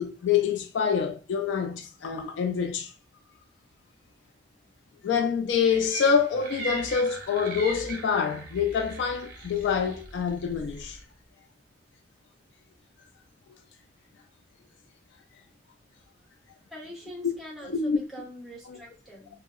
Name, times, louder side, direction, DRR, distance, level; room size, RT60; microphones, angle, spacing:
voice 1, 0.0-2.9 5.0-11.0 17.6-18.0 18.7-18.8, left 6 dB, 65° left, 0.3 m, -26 dB
sound 1, 5.6-11.0, right 2 dB, 50° right, 0.5 m, -39 dB
voice 2, 16.7-19.3, equal, ahead, 0.7 m, -43 dB
2.6 x 2.0 x 2.3 m
head